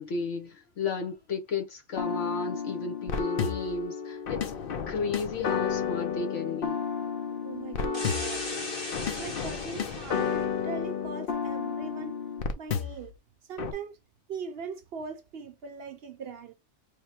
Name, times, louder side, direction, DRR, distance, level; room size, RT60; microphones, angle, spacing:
voice 1, 0.0-4.5 4.9-6.8, left 4 dB, 75° left, 1.3 m, -33 dB
sound 1, 2.0-13.1 13.6-13.7, left 6 dB, 55° left, 0.7 m, -32 dB
voice 2, 7.4-8.6 9.2-12.2 12.6-13.1 13.5-14.0 14.3-16.5, right 5 dB, 60° right, 0.8 m, -40 dB
sound 2, 7.9-10.4, left 2 dB, 25° left, 1.1 m, -37 dB
3.4 x 2.1 x 4.2 m
omnidirectional pair, 1.2 m